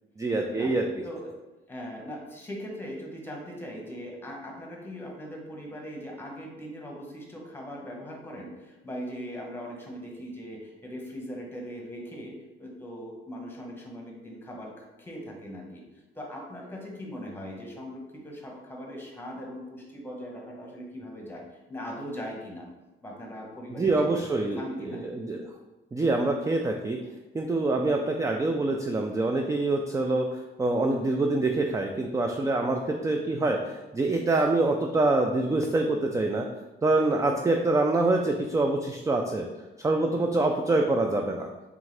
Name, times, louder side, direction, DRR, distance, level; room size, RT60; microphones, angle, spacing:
voice 1, 0.2-0.9 23.7-25.4 25.9-27.0 27.3-36.5 36.8-39.5 39.8-41.5, right 2 dB, 15° right, 3 dB, 0.3 m, -25 dB
voice 2, 1.7-21.4 21.7-22.7 23.0-25.0 27.8-28.0 37.1-37.4 40.1-40.4, equal, 10° left, -1 dB, 1.2 m, -40 dB
3.7 x 3.5 x 3.3 m, 1.1 s
cardioid pair, 90°, 20 cm